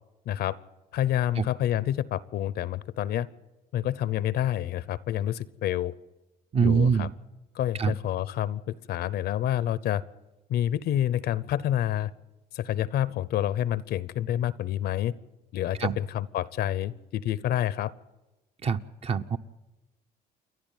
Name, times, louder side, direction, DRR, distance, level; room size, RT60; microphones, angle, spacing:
voice 1, 0.3-0.6 0.9-3.3 3.7-5.9 6.6-7.1 7.5-10.0 10.5-12.1 12.5-15.1 15.5-17.9, left 11 dB, 70° left, 19 dB, 0.7 m, -28 dB
voice 2, 6.5-7.1 7.8-7.9 15.8-16.0 18.6-19.4, right 6 dB, 35° right, 10 dB, 0.8 m, -24 dB
28.5 x 11.5 x 9.1 m, 1.1 s
cardioid pair, 110°, 17 cm